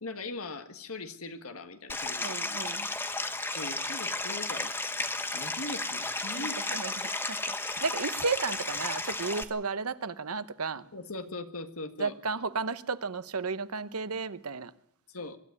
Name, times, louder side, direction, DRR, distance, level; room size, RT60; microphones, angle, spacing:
voice 1, 0.0-2.4 3.5-5.1 5.3-6.7 10.9-12.2 15.1-15.4, left 2 dB, 75° left, 1.8 m, -40 dB
Stream, 1.9-9.4, left 2 dB, 10° left, 1.1 m, -33 dB
voice 2, 2.2-2.9 6.3-10.9 12.0-14.7, right 4 dB, 90° right, 1.0 m, -33 dB
24.0 x 12.5 x 9.6 m
head